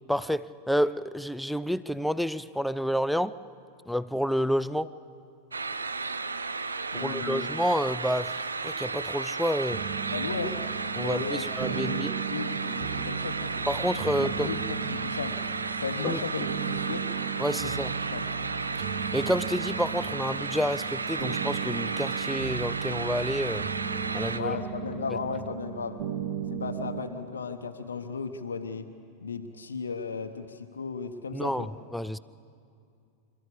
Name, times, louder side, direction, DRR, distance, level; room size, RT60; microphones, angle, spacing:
voice 1, 0.1-3.3 3.9-4.9 6.9-9.8 11.0-12.1 13.7-14.5 16.0-16.2 17.4-17.9 19.1-23.7 24.1-24.6 31.3-32.2, equal, ahead, 15 dB, 0.5 m, -29 dB
sound 1, 5.5-24.4, right 4 dB, 75° right, 0.7 m, -33 dB
voice 2, 6.9-7.5 10.1-10.6 10.9-13.5 14.2-15.4 15.8-17.0 17.5-17.8 18.1-18.3 24.3-26.0 26.5-28.9 29.2-31.7, left 5 dB, 70° left, 6 dB, 1.0 m, -35 dB
sound 2, 9.7-27.0, right 8 dB, 45° right, 1.4 m, -36 dB
26.0 x 13.5 x 8.6 m, 2.4 s
figure-of-eight pair, 90°, 0 cm